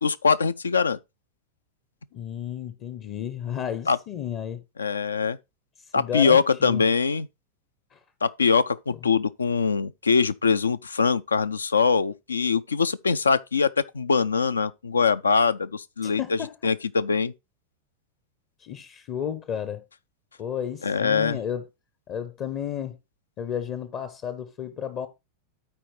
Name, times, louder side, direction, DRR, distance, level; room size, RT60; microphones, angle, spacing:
voice 1, 0.0-1.0 3.9-4.0 4.8-5.4 5.9-7.3 8.2-17.3 20.8-21.4, left 5 dB, 75° left, 0.3 m, -23 dB
voice 2, 2.1-4.6 6.0-6.8 7.9-8.0 16.0-16.6 18.6-19.8 20.4-21.6 22.1-23.0 23.4-25.1, left 9 dB, 35° left, 0.6 m, -32 dB
13.0 x 4.4 x 3.1 m
figure-of-eight pair, 90°, 0 cm